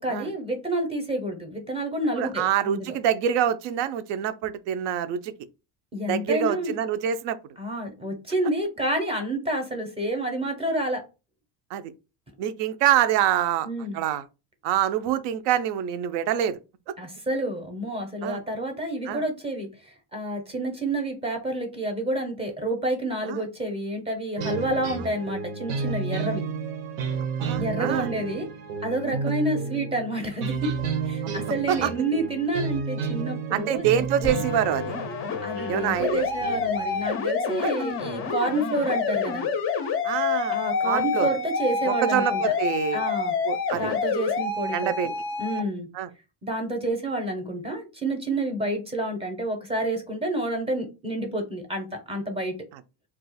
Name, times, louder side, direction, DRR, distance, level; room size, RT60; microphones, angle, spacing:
voice 1, 0.0-2.9 5.9-6.7 7.6-11.0 13.6-14.0 17.0-26.4 27.5-28.5 28.8-30.7 31.0-33.9 34.2-34.4 35.4-39.5 40.5-42.4 42.9-43.3 43.7-45.9 46.4-52.5, right 1 dB, 15° right, 0.6 m, -29 dB
voice 2, 2.2-5.3 6.1-7.4 11.7-11.9 12.4-13.7 13.9-14.2 14.6-16.6 18.2-18.4 19.1-19.2 23.2-23.4 27.4-28.1 31.7-31.9 33.5-34.9 35.7-36.2 37.6-37.7 40.0-40.6 40.8-41.3 41.9-43.0 43.5-43.9 44.7-45.1 45.9-46.1, right 10 dB, 65° right, 0.5 m, -25 dB
sound 1, 24.4-37.1, right 5 dB, 85° right, 0.9 m, -32 dB
sound 2, 34.2-45.6, left 5 dB, 30° left, 0.4 m, -28 dB
2.4 x 2.3 x 4.0 m
cardioid pair, 150°, 46 cm